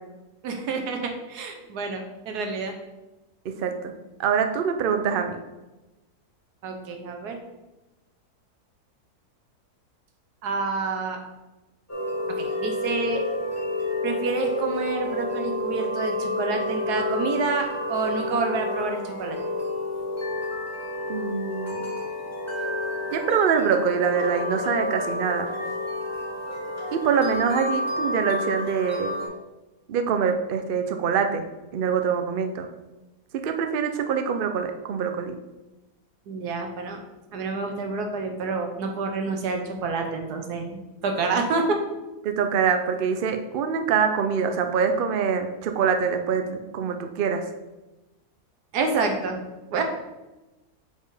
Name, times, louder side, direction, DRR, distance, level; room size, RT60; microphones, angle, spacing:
voice 1, 0.4-2.7 6.6-7.4 10.4-11.2 12.3-13.2 14.0-19.4 36.3-37.0 37.3-41.8 48.7-49.4 49.7-49.8, right 4 dB, 85° right, 4 dB, 1.4 m, -28 dB
voice 2, 3.4-3.9 4.2-5.4 21.1-21.9 23.1-25.5 26.9-29.2 29.9-31.5 31.7-32.7 33.4-35.4 42.2-47.4, right 6 dB, 65° right, 6 dB, 0.5 m, -24 dB
sound 1, 11.9-29.3, left 1 dB, 10° left, 1.3 m, -30 dB
5.1 x 4.4 x 4.8 m, 1.1 s
omnidirectional pair, 1.6 m